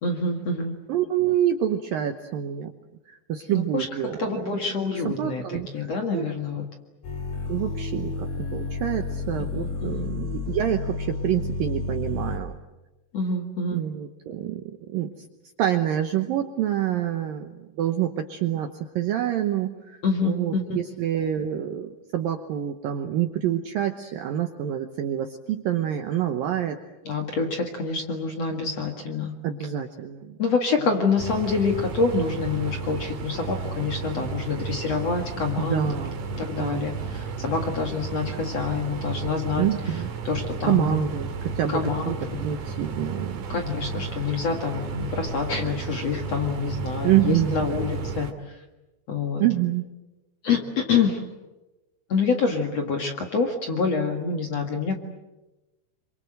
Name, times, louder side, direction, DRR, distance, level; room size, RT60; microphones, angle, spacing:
voice 1, 0.0-0.7 3.5-3.9 4.2-6.7 9.5-10.1 13.1-13.8 20.0-20.8 27.0-29.3 30.4-35.9 36.4-41.1 41.7-42.0 42.3-42.4 43.5-48.6 49.1-49.4 50.4-51.2 52.1-55.0, left 4 dB, 50° left, 3 dB, 2.2 m, -27 dB
voice 2, 0.9-2.7 3.1-4.5 5.1-5.7 6.1-6.3 7.5-12.6 13.7-15.1 15.6-17.5 17.8-18.7 19.0-26.8 29.4-30.4 35.6-36.2 36.6-37.0 39.6-40.1 40.6-41.8 42.1-42.2 42.4-43.5 47.0-47.7 49.4-49.9, right 11 dB, 75° right, 6 dB, 2.2 m, -27 dB
sound 1, 7.0-12.4, left 3 dB, 65° left, 5.6 m, -31 dB
sound 2, 31.2-48.3, right 4 dB, 50° right, 3.1 m, -33 dB
27.5 x 25.5 x 7.9 m, 1.1 s
omnidirectional pair, 5.3 m